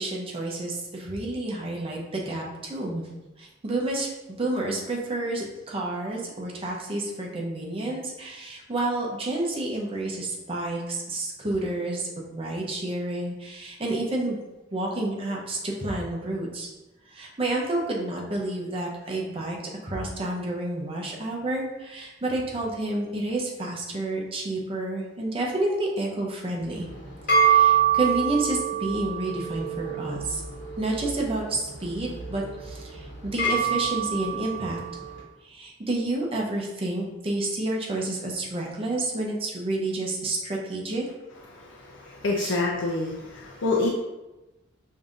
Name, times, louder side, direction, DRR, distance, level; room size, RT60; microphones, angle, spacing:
voice 1, 0.0-3.0 3.4-4.1 4.4-14.4 14.7-16.7 17.1-19.6 19.8-26.9 27.4-30.4 30.8-34.8 35.4-41.1 42.4-42.6, right 2 dB, 30° right, -2 dB, 0.6 m, -29 dB
sound 1, 26.7-35.2, right 7 dB, 45° left, 1.3 m, -26 dB
voice 2, 41.5-43.9, left 2 dB, 70° left, -3 dB, 0.5 m, -27 dB
5.3 x 2.7 x 2.4 m, 1.0 s
head